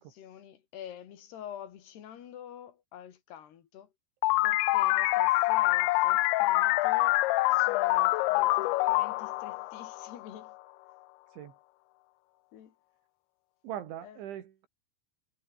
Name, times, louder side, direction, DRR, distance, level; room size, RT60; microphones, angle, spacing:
voice 1, 0.0-3.9 4.4-10.5 12.5-12.7 14.0-14.2, left 10 dB, 65° left, 4.4 m, -47 dB
sound 1, 4.2-10.5, left 20 dB, 80° left, 3.0 m, -26 dB
voice 2, 13.6-14.7, right 11 dB, 80° right, 4.7 m, -41 dB
omnidirectional pair, 5.3 m